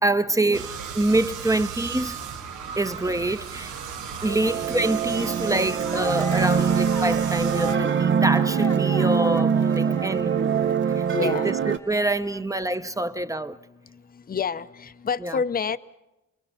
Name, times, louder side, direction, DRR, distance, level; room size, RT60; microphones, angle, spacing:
voice 1, 0.0-2.2 2.8-3.7 4.2-13.6 15.2-15.4, right 2 dB, 10° right, 0.8 m, -26 dB
sound 1, 0.5-7.7, right 7 dB, 80° right, 1.4 m, -35 dB
sound 2, 4.2-11.8, right 7 dB, 40° right, 0.8 m, -23 dB
sound 3, 5.1-5.5 5.8-12.4, left 2 dB, 10° left, 1.0 m, -40 dB
voice 2, 6.4-6.8 11.1-11.6 14.3-15.8, left 6 dB, 30° left, 0.7 m, -28 dB
30.0 x 22.5 x 5.5 m
cardioid pair, 90°, 30 cm